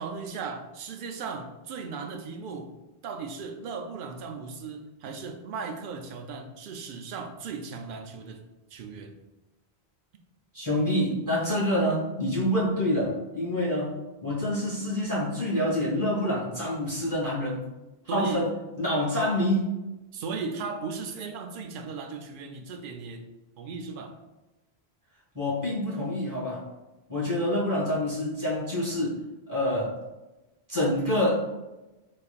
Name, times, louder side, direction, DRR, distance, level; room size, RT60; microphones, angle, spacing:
voice 1, 0.0-2.7 3.0-8.4 8.7-9.1 18.1-18.4 20.1-23.3 23.6-24.1, right 5 dB, 60° right, 4 dB, 0.6 m, -36 dB
voice 2, 10.5-17.7 18.0-18.5 18.8-19.8 25.3-26.6 27.1-29.2 29.5-30.0 30.7-31.5, left 1 dB, 20° right, -7 dB, 1.5 m, -27 dB
4.2 x 3.2 x 2.4 m, 1.0 s
omnidirectional pair, 1.1 m